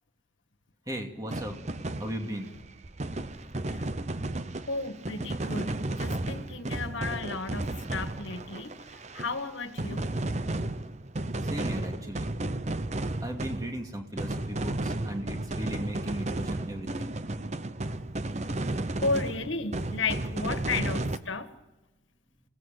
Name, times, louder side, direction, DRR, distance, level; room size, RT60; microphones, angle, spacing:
voice 1, 0.9-1.6 2.0-2.5 11.4-12.3 13.2-17.1, right 1 dB, 20° right, 3 dB, 2.4 m, -36 dB
sound 1, 1.3-9.5 9.8-21.2, right 2 dB, 35° right, 0.8 m, -33 dB
voice 2, 4.7-8.8 9.1-10.1 17.8-18.7 19.0-21.5, left 3 dB, 90° left, 9 dB, 1.7 m, -34 dB
29.0 x 17.5 x 9.2 m, 1.1 s
head